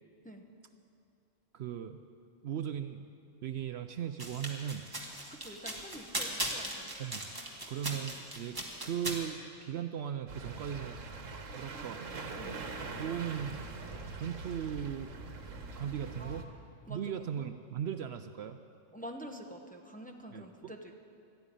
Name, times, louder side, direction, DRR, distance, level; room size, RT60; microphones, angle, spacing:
voice 1, 1.5-2.0 2.4-3.1 3.4-4.9 7.0-7.3 7.6-11.0 11.5-12.0 13.0-13.6 14.1-15.2 15.7-16.4 16.9-18.6 20.3-20.7, right 9 dB, 65° right, 9 dB, 0.8 m, -38 dB
sound 1, 4.2-9.2, right 1 dB, 20° right, 1.6 m, -38 dB
voice 2, 5.3-6.9 11.7-11.9 12.4-12.6 16.2-16.5 16.9-17.1 18.9-21.0, equal, 10° left, 3 dB, 0.8 m, -47 dB
sound 2, 10.3-16.4, right 3 dB, 85° right, 1.5 m, -43 dB
13.0 x 9.0 x 9.9 m, 2.5 s
omnidirectional pair, 1.3 m